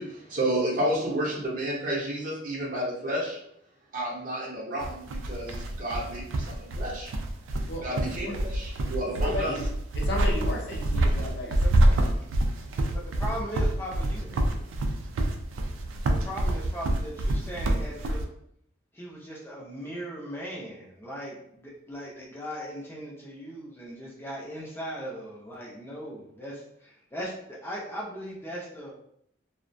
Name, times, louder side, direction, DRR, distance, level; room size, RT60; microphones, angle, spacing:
voice 1, 0.0-3.4 3.9-7.1 7.8-9.5, right 1 dB, 40° right, -5 dB, 0.7 m, -31 dB
sound 1, 4.8-18.2, right 1 dB, 85° right, 0.3 m, -27 dB
voice 2, 7.7-8.4 9.0-9.7 9.9-11.6, left 1 dB, 55° left, -1 dB, 0.6 m, -34 dB
voice 3, 11.6-12.3 12.9-14.6 16.1-18.2 18.9-28.9, equal, 10° left, -5 dB, 0.5 m, -38 dB
2.3 x 2.1 x 2.5 m, 0.72 s
head